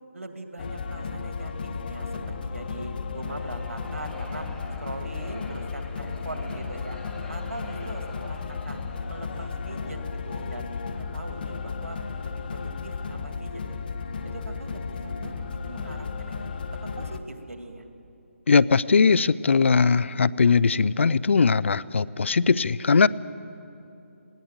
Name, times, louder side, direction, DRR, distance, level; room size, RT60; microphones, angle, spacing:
voice 1, 0.1-4.5 4.8-8.8 9.1-10.7 11.0-13.6 14.2-15.4 15.6-16.5 17.0-17.9, right 2 dB, 80° right, 5 dB, 2.4 m, -41 dB
sound 1, 0.6-17.2, left 5 dB, 40° left, 1.0 m, -34 dB
sound 2, 3.1-10.3, left 3 dB, 5° left, 0.9 m, -48 dB
voice 2, 18.5-23.1, left 5 dB, 60° left, 19 dB, 0.5 m, -20 dB
19.5 x 17.0 x 8.0 m, 2.8 s
figure-of-eight pair, 155°, 7 cm